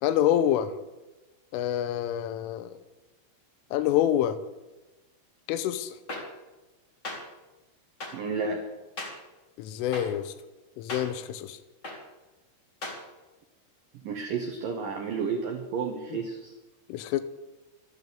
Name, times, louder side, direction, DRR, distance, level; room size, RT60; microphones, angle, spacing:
voice 1, 0.0-0.7 1.5-2.7 3.7-4.4 5.5-5.9 9.6-10.3 10.8-11.6 16.9-17.2, left 11 dB, 90° left, 12 dB, 3.3 m, -26 dB
clap loop, 6.1-6.2 7.0-7.2 8.0-8.1 9.0-9.1 9.9-10.0 10.9-11.0 11.8-12.0 12.8-13.0, left 2 dB, 65° left, 0.7 m, -35 dB
voice 2, 8.1-8.6 14.0-16.5, right 5 dB, 85° right, 3 dB, 1.9 m, -31 dB
12.5 x 11.0 x 6.8 m, 1.1 s
omnidirectional pair, 5.7 m